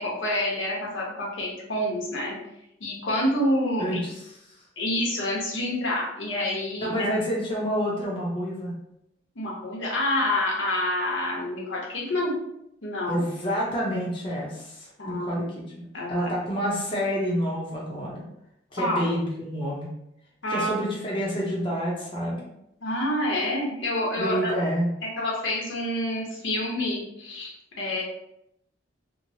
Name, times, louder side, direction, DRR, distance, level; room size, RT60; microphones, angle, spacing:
voice 1, 0.0-2.3 2.8-4.0 4.8-7.1 9.4-12.3 12.8-13.2 15.0-15.4 15.9-16.3 18.8-19.1 20.4-20.8 22.8-24.5 25.0-28.0, left 1 dB, 80° left, -3 dB, 0.8 m, -28 dB
voice 2, 3.8-4.1 4.5-4.6 6.8-8.7 13.1-18.2 18.7-19.9 20.5-22.4 24.2-24.9, equal, 25° left, -5 dB, 0.5 m, -28 dB
3.0 x 2.0 x 2.6 m, 0.79 s
head